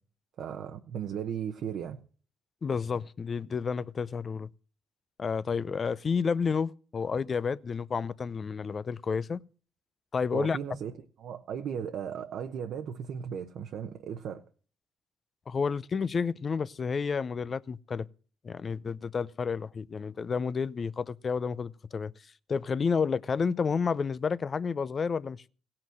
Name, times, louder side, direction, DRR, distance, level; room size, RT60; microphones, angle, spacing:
voice 1, 0.4-2.0 10.3-10.9 11.2-14.4, right 8 dB, 65° right, 0.9 m, -36 dB
voice 2, 2.6-4.5 5.2-9.4 10.1-10.6 15.5-18.1 18.4-22.1 22.5-25.5, left 5 dB, 40° left, 0.5 m, -30 dB
16.5 x 5.9 x 7.6 m
supercardioid pair, 75°, 0 cm